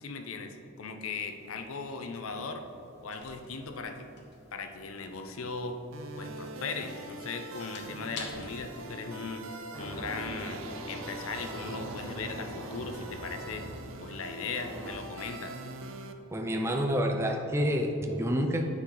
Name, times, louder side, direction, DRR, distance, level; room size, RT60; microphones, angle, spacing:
voice 1, 0.0-2.7 3.0-4.1 4.5-5.8 6.2-9.5 9.8-10.6 10.9-13.7 14.0-15.6, left 4 dB, 75° left, 6 dB, 0.7 m, -38 dB
sound 1, 1.1-10.0, left 3 dB, 55° left, 1.1 m, -51 dB
sound 2, 5.9-16.1, right 2 dB, 65° right, 0.5 m, -43 dB
sound 3, 9.7-14.9, equal, 15° left, 1.4 m, -43 dB
voice 2, 16.3-18.7, equal, 10° right, 3 dB, 0.4 m, -28 dB
9.0 x 5.7 x 3.9 m, 3.0 s
head